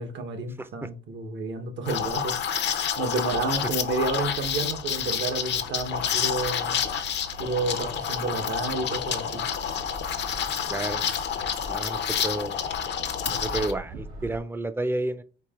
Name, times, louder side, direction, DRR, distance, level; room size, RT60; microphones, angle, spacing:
voice 1, 0.0-2.5 3.0-6.8 7.4-9.5, right 3 dB, 65° right, 1.1 m, -30 dB
Liquid, 1.9-13.7, left 8 dB, 60° left, 0.7 m, -29 dB
sound 1, 3.2-14.4, right 1 dB, 90° right, 1.3 m, -44 dB
voice 2, 10.7-11.0 11.7-12.6 13.3-15.2, right 2 dB, 10° right, 0.5 m, -30 dB
4.7 x 2.8 x 3.6 m
cardioid pair, 90°, 20 cm